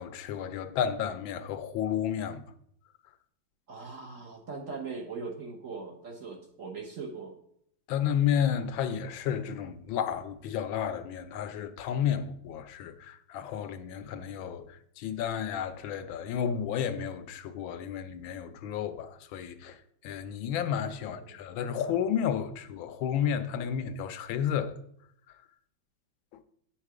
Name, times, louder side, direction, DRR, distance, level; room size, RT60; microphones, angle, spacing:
voice 1, 0.0-2.4 7.9-19.8 20.0-24.8, left 8 dB, 80° left, 1.4 m, -32 dB
voice 2, 3.7-7.4 21.0-21.3, right 4 dB, 50° right, 1.0 m, -40 dB
9.0 x 5.6 x 4.8 m
omnidirectional pair, 2.2 m